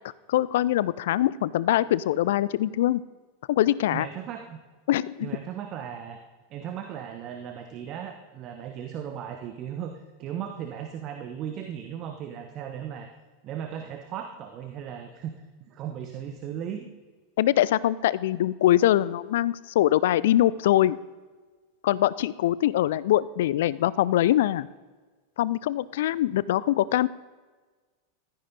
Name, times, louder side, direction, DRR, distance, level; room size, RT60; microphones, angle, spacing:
voice 1, 0.3-3.0 3.5-4.1 4.9-5.3 17.4-21.0 21.8-24.7 25.4-27.1, left 13 dB, 60° left, 20 dB, 0.4 m, -23 dB
voice 2, 3.9-4.6 5.2-6.2 6.5-9.9 10.2-13.1 13.4-15.3 15.7-16.9, right 9 dB, 40° right, 6 dB, 1.2 m, -36 dB
15.5 x 13.5 x 4.1 m, 1.3 s
figure-of-eight pair, 90°, 0 cm